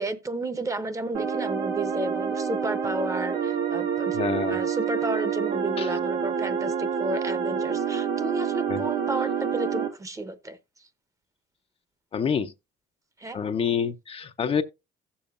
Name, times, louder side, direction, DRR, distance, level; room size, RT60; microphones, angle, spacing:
voice 1, 0.0-4.2 4.5-10.6 13.2-13.4, right 2 dB, 20° right, 0.8 m, -32 dB
sound 1, 1.1-9.9, right 7 dB, 85° right, 1.9 m, -27 dB
voice 2, 4.1-4.6 5.8-5.9 8.7-8.8 12.1-12.5 13.3-14.6, left 7 dB, 35° left, 0.5 m, -27 dB
15.5 x 7.0 x 2.4 m
cardioid pair, 110°, 17 cm